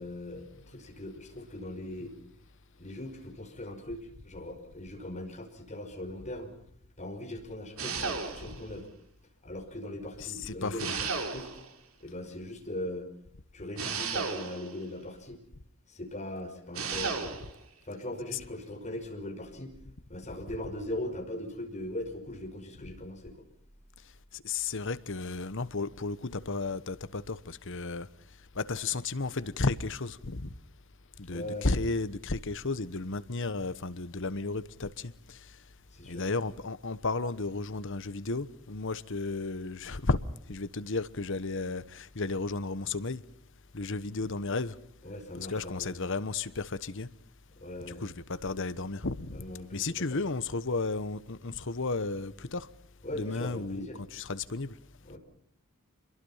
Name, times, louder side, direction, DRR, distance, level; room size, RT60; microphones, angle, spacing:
voice 1, 0.0-2.1 2.8-6.5 7.0-8.9 9.4-11.5 12.0-13.1 13.5-15.4 15.9-17.3 17.9-19.7 20.1-23.3 31.3-31.7 35.9-36.2 45.0-45.9 47.6-48.0 49.3-50.3 53.0-54.0 55.0-55.2, left 1 dB, 35° left, 5.4 m, -40 dB
sound 1, 7.8-8.7 10.8-11.7 13.8-14.8 16.7-17.5, right 5 dB, 75° right, 3.6 m, -34 dB
voice 2, 10.2-11.1 18.3-18.4 24.3-28.1 28.5-30.5 31.2-35.5 36.1-40.2 40.5-43.2 43.7-44.8 45.3-47.1 47.8-49.4 49.7-52.7 53.1-54.7, left 3 dB, 60° left, 1.2 m, -33 dB
27.5 x 22.5 x 5.7 m
head